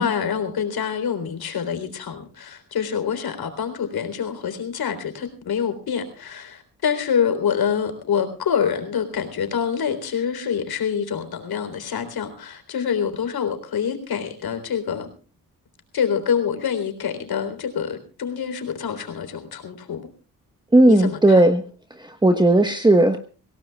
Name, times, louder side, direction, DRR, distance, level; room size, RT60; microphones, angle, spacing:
voice 1, 0.0-15.1 15.9-20.1 20.8-21.5, left 7 dB, 80° left, 8 dB, 3.9 m, -26 dB
voice 2, 20.7-21.6 21.9-23.2, right 1 dB, 10° right, 6 dB, 1.2 m, -16 dB
25.5 x 18.0 x 2.3 m, 0.37 s
wide cardioid pair, 125°, 37 cm